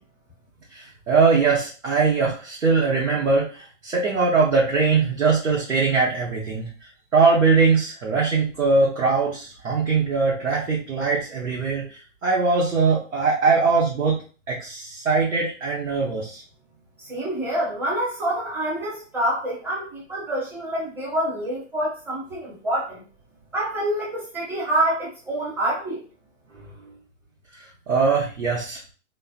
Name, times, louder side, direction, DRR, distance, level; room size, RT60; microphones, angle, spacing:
voice 1, 0.7-6.7 7.1-14.2 14.5-16.4 27.9-28.8, right 4 dB, 85° right, -5 dB, 1.0 m, -21 dB
voice 2, 17.1-23.0 23.5-26.0, right 1 dB, 5° right, -5 dB, 0.7 m, -26 dB
3.2 x 2.0 x 2.4 m, 0.38 s
hypercardioid pair, 130°, 38 cm